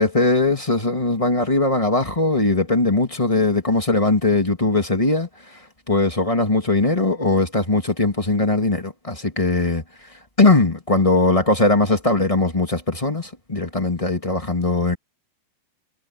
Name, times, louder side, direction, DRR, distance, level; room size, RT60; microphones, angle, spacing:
voice 1, 0.0-9.8 10.4-15.0, left 2 dB, 15° left, 1.2 m, -20 dB
omnidirectional pair, 4.0 m